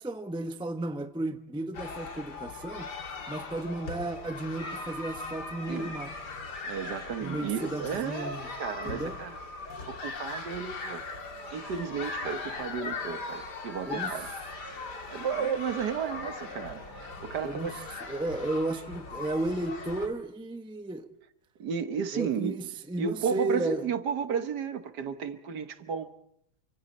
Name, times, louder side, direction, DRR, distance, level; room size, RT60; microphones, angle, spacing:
voice 1, 0.0-2.9 3.3-6.1 7.2-8.5 8.8-9.2 13.8-14.1 17.4-17.7 18.1-21.1 22.1-23.9, right 2 dB, 5° right, 0.5 m, -33 dB
sound 1, 1.7-20.1, left 3 dB, 55° left, 2.8 m, -39 dB
voice 2, 6.7-9.4 9.9-11.0 11.5-14.3 15.1-17.9 21.6-22.6 23.0-26.1, right 7 dB, 60° right, 1.6 m, -33 dB
28.5 x 25.5 x 4.3 m
omnidirectional pair, 2.2 m